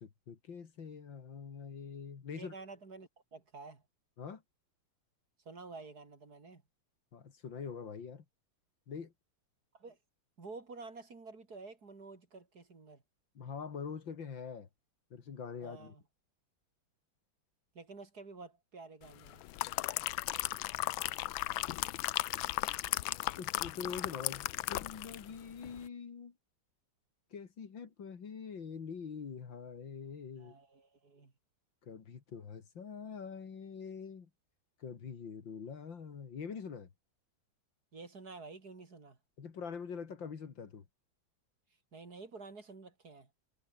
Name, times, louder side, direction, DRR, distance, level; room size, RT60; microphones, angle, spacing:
voice 1, 0.0-2.5 4.2-4.4 7.1-8.2 8.9-9.1 13.3-14.7 15.1-15.9 23.4-26.3 27.3-30.5 31.8-34.3 34.8-36.9 39.4-40.9, left 6 dB, 65° left, 2.8 m, -44 dB
voice 2, 2.3-3.8 5.5-6.6 9.7-10.0 10.4-13.0 15.6-16.0 17.8-19.4 30.4-31.3 37.9-39.2 41.9-43.3, right 3 dB, 50° right, 3.6 m, -50 dB
sound 1, 19.3-25.3 25.6-25.8, left 16 dB, 85° left, 1.4 m, -36 dB
omnidirectional pair, 2.2 m